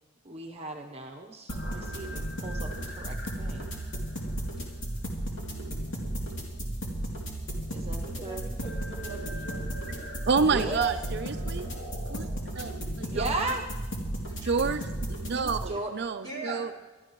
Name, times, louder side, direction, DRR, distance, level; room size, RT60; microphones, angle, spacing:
voice 1, 0.2-2.7 3.0-3.8 7.7-8.4 10.5-11.0 11.4-11.8 13.0-13.6 15.7-15.9, right 3 dB, 30° right, 2 dB, 0.9 m, -35 dB
sound 1, 1.5-15.6, right 1 dB, 65° left, 2.8 m, -34 dB
voice 2, 8.0-10.1 14.3-14.8 15.7-15.8 16.2-16.7, right 2 dB, 20° left, -3 dB, 3.8 m, -43 dB
voice 3, 10.2-11.7 12.1-12.3 12.6-12.7 13.0-13.6 14.4-14.8 15.2-16.7, right 5 dB, 55° right, 9 dB, 0.5 m, -29 dB
23.5 x 13.0 x 3.1 m, 1.2 s
head